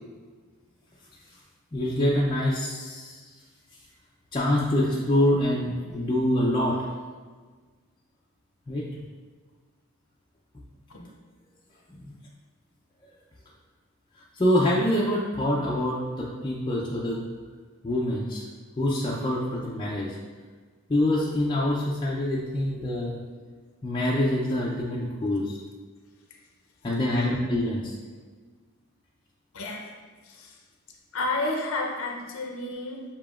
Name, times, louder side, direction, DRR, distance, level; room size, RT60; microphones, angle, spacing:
voice 1, 1.7-3.2 4.3-6.8 8.7-8.8 11.0-11.1 12.0-12.1 14.4-17.3 17.8-18.4 18.8-20.1 20.9-23.2 23.8-25.6 26.8-27.9, left 1 dB, 20° left, -5 dB, 0.4 m, -25 dB
voice 2, 27.1-27.4 29.5-29.9 30.2-30.6 31.1-33.0, left 2 dB, 75° left, 1 dB, 0.6 m, -31 dB
6.8 x 2.8 x 2.4 m, 1.5 s
head